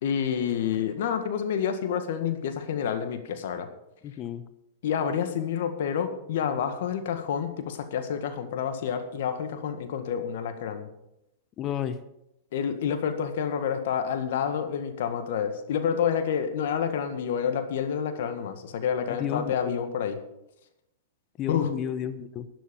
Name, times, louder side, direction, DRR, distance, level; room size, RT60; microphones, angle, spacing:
voice 1, 0.0-3.7 4.8-10.9 12.5-20.2 21.5-21.7, left 8 dB, 65° left, 8 dB, 1.8 m, -28 dB
voice 2, 4.0-4.4 11.6-12.0 19.1-19.8 21.4-22.5, left 9 dB, 35° left, 12 dB, 0.9 m, -32 dB
12.5 x 10.0 x 5.4 m, 0.85 s
hypercardioid pair, 110°, 0 cm